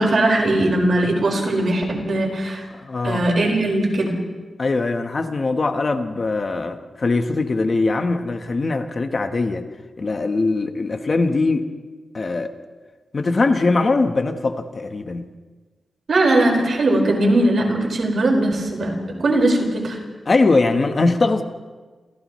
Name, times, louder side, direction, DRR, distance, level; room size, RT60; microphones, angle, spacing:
voice 1, 0.0-2.6 3.0-4.1 16.1-20.0, right 1 dB, 55° right, 0 dB, 5.1 m, -19 dB
voice 2, 2.7-3.2 4.6-9.6 10.0-11.7 12.1-12.5 13.1-15.3 20.3-21.4, left 3 dB, 35° left, 6 dB, 1.2 m, -21 dB
29.5 x 27.5 x 3.2 m, 1.3 s
wide cardioid pair, 170°, 0 cm